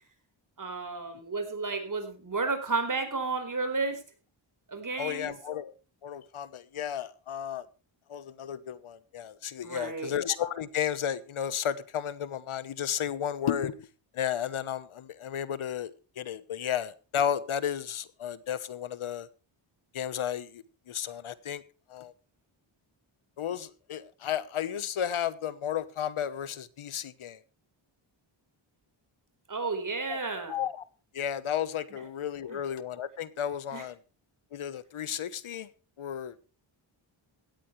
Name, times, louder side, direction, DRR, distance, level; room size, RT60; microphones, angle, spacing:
voice 1, 0.6-4.0 4.7-5.3 9.6-10.2 29.5-30.6 31.9-32.0 32.5-32.6 33.7-33.9, right 4 dB, 40° right, 7 dB, 4.6 m, -32 dB
voice 2, 5.0-5.7 6.0-7.7 8.1-13.9 14.1-19.3 19.9-21.6 21.9-22.1 23.4-27.4 30.1-30.2 30.5-30.8 31.1-34.0 34.5-35.7 36.0-36.5, left 9 dB, 80° left, 16 dB, 1.2 m, -33 dB
17.0 x 13.5 x 3.3 m, 0.33 s
wide cardioid pair, 105°, 50 cm